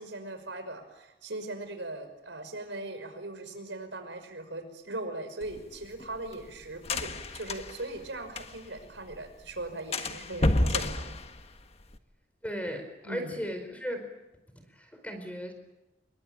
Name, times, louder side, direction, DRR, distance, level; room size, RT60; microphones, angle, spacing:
voice 1, 0.0-11.2 13.0-13.3, right 2 dB, 85° right, 7 dB, 5.7 m, -39 dB
sound 1, 5.4-8.8 9.1-9.2 9.5-9.6 9.9-12.0, left 2 dB, 35° left, 1.5 m, -30 dB
voice 2, 12.4-14.1 14.7-15.5, equal, 10° left, 6 dB, 4.8 m, -36 dB
28.0 x 23.0 x 9.1 m, 0.96 s
head